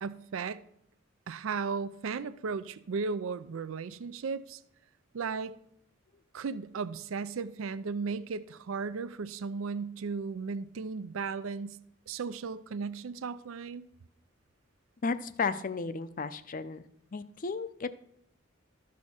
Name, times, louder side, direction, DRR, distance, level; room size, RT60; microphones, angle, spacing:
voice 1, 0.0-0.6 1.3-4.6 5.1-5.6 6.3-11.8 12.1-13.9, right 5 dB, 80° right, 0.4 m, -35 dB
voice 2, 15.0-16.8 17.1-17.9, left 4 dB, 40° left, 0.5 m, -33 dB
13.0 x 6.3 x 4.3 m
head